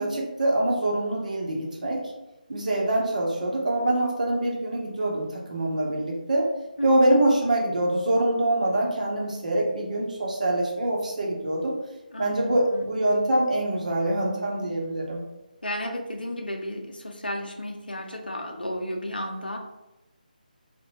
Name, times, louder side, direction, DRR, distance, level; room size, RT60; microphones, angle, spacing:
voice 1, 0.0-2.0 2.5-6.5 6.8-11.8 12.2-15.2, right 1 dB, 55° right, -1 dB, 0.7 m, -24 dB
voice 2, 12.1-12.9 15.6-19.6, left 1 dB, 85° left, 3 dB, 0.5 m, -33 dB
2.6 x 2.1 x 3.0 m, 0.96 s
figure-of-eight pair, 155°, 5 cm